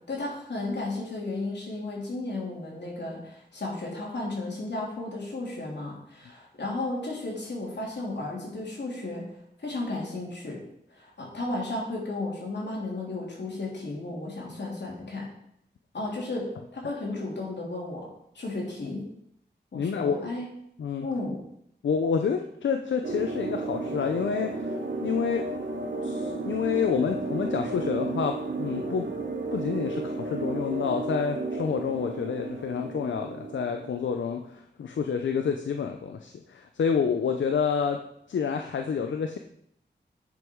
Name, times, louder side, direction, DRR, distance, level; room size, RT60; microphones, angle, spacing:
voice 1, 0.1-9.2 9.6-10.6 10.9-15.3 15.9-16.5 16.7-18.1 18.3-19.1 19.7-20.5 21.0-21.4, left 2 dB, 70° left, -2 dB, 3.1 m, -34 dB
voice 2, 19.7-20.4 20.8-21.1 21.8-25.5 26.0-29.1 29.5-38.0 38.3-39.4, left 6 dB, 90° left, 5 dB, 0.6 m, -28 dB
sound 1, 23.0-34.2, right 3 dB, 75° right, 1.3 m, -33 dB
9.5 x 5.5 x 4.6 m, 0.73 s
cardioid pair, 50°, 19 cm